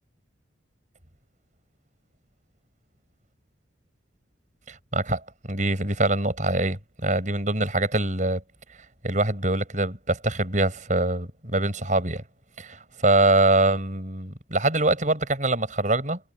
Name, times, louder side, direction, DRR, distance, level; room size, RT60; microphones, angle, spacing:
voice 1, 4.7-5.2 5.5-8.4 9.0-12.2 12.6-16.2, right 2 dB, 40° right, 7.0 m, -24 dB
head